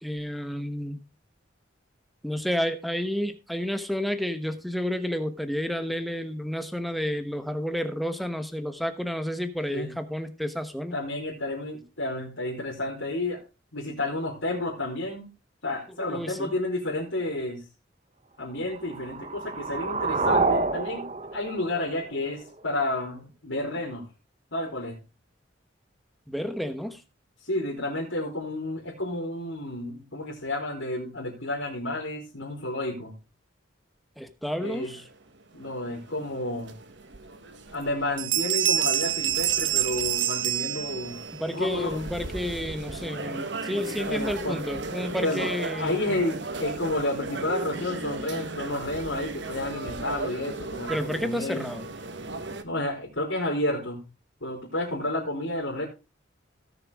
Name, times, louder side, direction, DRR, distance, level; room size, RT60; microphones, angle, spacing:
voice 1, 0.0-1.0 2.2-11.0 16.1-16.5 26.3-27.0 34.2-35.0 41.4-46.2 50.9-51.9, equal, ahead, 8 dB, 1.2 m, -30 dB
voice 2, 10.9-13.4 13.7-15.3 15.6-17.6 18.4-24.0 24.5-25.0 27.4-33.1 34.6-34.9 35.5-36.7 37.7-41.2 41.5-42.1 44.1-44.6 45.1-45.5 45.8-51.7 52.6-54.0 54.4-55.8, left 1 dB, 90° left, -2 dB, 4.1 m, -31 dB
sound 1, 18.7-22.7, right 3 dB, 35° right, 0.9 m, -28 dB
sound 2, 34.6-52.6, right 2 dB, 70° right, 1.3 m, -37 dB
sound 3, 37.1-37.2 37.7-37.9 38.2-41.3, right 12 dB, 85° right, 1.0 m, -26 dB
17.5 x 6.8 x 3.6 m, 0.28 s
head